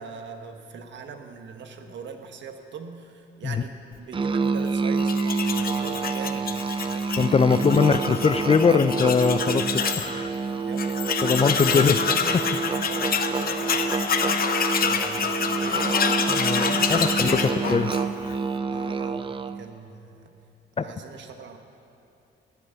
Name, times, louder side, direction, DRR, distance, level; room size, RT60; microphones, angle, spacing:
voice 1, 0.0-7.7 10.6-10.9 11.4-12.5 12.8-14.4 14.8-15.8 16.6-17.7 18.7-20.3 20.8-21.6, right 5 dB, 65° right, 5 dB, 1.4 m, -41 dB
Musical instrument, 4.1-19.7, right 4 dB, 25° right, 0.5 m, -28 dB
Tools, 5.0-10.1 10.4-10.5 10.8-18.4, left 6 dB, 50° left, 1.0 m, -27 dB
voice 2, 7.2-10.3 11.2-12.0 12.7-12.9 16.3-17.4 17.7-17.9 20.8-20.9, left 5 dB, 30° left, 12 dB, 0.5 m, -22 dB
17.5 x 8.9 x 7.0 m, 2.7 s
cardioid pair, 90°, 20 cm